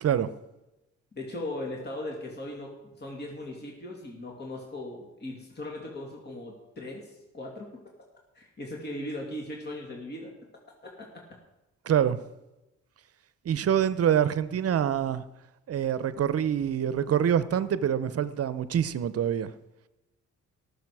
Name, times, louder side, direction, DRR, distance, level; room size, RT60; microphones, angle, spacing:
voice 1, 1.2-7.7 8.3-10.3, left 1 dB, 35° left, -1 dB, 2.6 m, -38 dB
voice 2, 11.9-12.2 13.4-15.2 15.7-19.5, right 9 dB, 50° right, 14 dB, 0.8 m, -25 dB
18.0 x 6.8 x 4.8 m, 0.98 s
cardioid pair, 90°, 30 cm